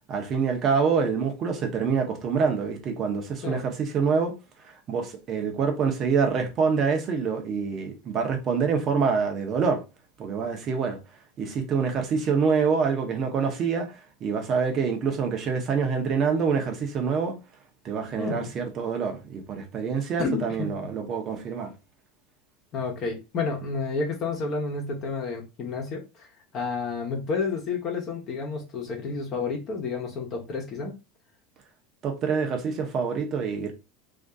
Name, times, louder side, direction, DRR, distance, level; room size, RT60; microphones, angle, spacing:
voice 1, 0.1-4.3 4.9-9.8 10.2-11.0 11.4-13.9 14.2-17.3 17.8-21.7 32.0-33.7, right 5 dB, 35° right, 0.9 m, -26 dB
voice 2, 18.1-18.5 20.2-20.8 22.7-26.3 26.5-30.9, left 4 dB, 35° left, 1.1 m, -30 dB
2.8 x 2.7 x 3.6 m
supercardioid pair, 145°, 0 cm